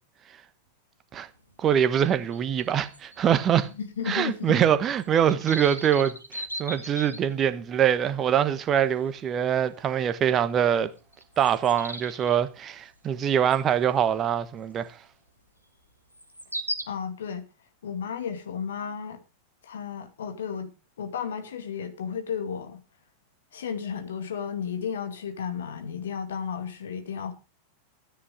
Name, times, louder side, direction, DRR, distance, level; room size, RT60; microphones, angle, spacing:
sound 1, 1.2-1.3 1.5-1.6 2.0-3.8 4.1-4.2 4.5-4.6 5.0-7.6 8.2-8.3 8.8-9.0 9.3-9.5 10.5-10.6 11.0-12.3 13.5-13.7 14.2-14.3 16.1-16.8, right 1 dB, 90° right, 1.8 m, -37 dB
voice 1, 1.6-3.7 4.1-10.9 11.4-14.9, right 9 dB, 30° right, 1.2 m, -24 dB
voice 2, 3.8-4.6 16.9-17.5 17.8-19.2 19.6-20.7 21.0-22.8 23.5-27.3, left 7 dB, 65° left, 2.0 m, -33 dB
13.0 x 10.0 x 5.0 m
figure-of-eight pair, 90°, 0 cm